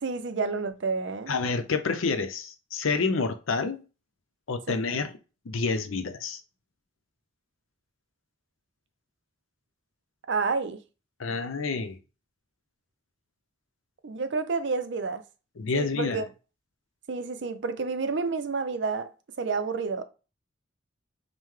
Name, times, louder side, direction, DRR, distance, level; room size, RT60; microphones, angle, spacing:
voice 1, 0.0-1.3 4.7-4.8 10.3-10.8 14.0-15.2 15.7-16.2 17.1-19.1 19.4-20.0, right 4 dB, 60° right, 0.5 m, -29 dB
voice 2, 1.3-3.8 4.5-5.1 5.5-6.4 11.2-12.0 15.6-16.2, left 4 dB, 85° left, 0.6 m, -28 dB
5.5 x 2.1 x 3.2 m
head